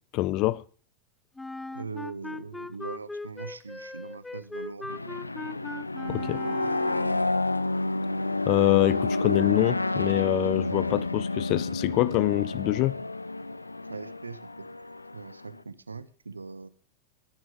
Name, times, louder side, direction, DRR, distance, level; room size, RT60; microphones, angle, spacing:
voice 1, 0.1-0.6 6.1-6.4 8.5-13.0, left 18 dB, 40° left, 0.7 m, -25 dB
Wind instrument woodwind instrument, 1.4-7.3, left 2 dB, 5° left, 0.6 m, -39 dB
voice 2, 1.7-4.9 6.3-6.7 13.9-14.4 15.1-16.7, right 4 dB, 80° right, 1.2 m, -40 dB
sound 1, 4.9-15.6, left 2 dB, 85° left, 0.7 m, -30 dB
22.0 x 11.0 x 3.7 m
figure-of-eight pair, 90°, 0 cm